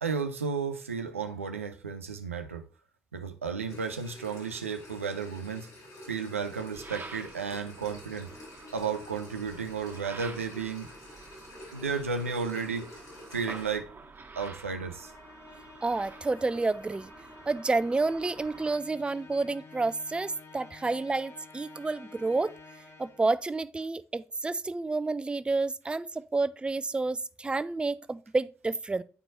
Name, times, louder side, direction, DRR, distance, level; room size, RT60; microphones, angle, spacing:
voice 1, 0.0-2.6 3.1-5.7 6.1-8.3 8.7-10.9 11.7-13.0 13.3-14.0 14.4-15.1 15.5-15.6, right 5 dB, 90° right, 0.4 m, -33 dB
sound 1, 3.7-13.7, left 1 dB, 55° left, 2.8 m, -49 dB
sound 2, 6.7-18.8, right 3 dB, 30° right, 1.4 m, -48 dB
Musical instrument, 14.9-23.4, left 3 dB, 40° left, 1.1 m, -51 dB
voice 2, 15.8-17.1 17.5-22.5 23.0-29.0, right 3 dB, 15° right, 0.3 m, -29 dB
8.9 x 4.5 x 2.6 m
figure-of-eight pair, 40°, 7 cm